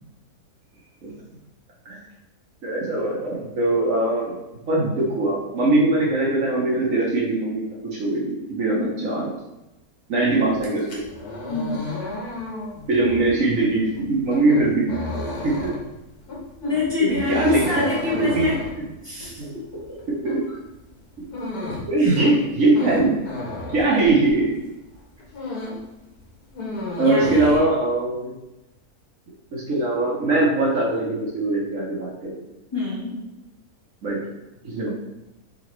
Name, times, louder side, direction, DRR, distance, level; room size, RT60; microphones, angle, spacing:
voice 1, 2.6-4.4 4.7-7.6 8.0-9.3 10.1-11.1 12.9-15.2 15.4-15.7 17.0-18.5 19.4-19.5 20.2-20.4 21.9-23.2 23.7-24.5 27.0-28.3 29.5-32.4 34.0-34.2 34.6-34.9, right 2 dB, 60° right, -4 dB, 1.2 m, -21 dB
sound 1, 10.5-24.6 24.9-25.9 26.2-27.6, left 2 dB, 75° left, 1.6 m, -33 dB
voice 2, 11.5-11.8 16.6-18.6 19.0-19.6 22.0-22.2 27.0-27.6 32.7-33.2, left 4 dB, 15° left, -7 dB, 1.2 m, -26 dB
4.1 x 3.9 x 3.1 m, 0.98 s
omnidirectional pair, 1.6 m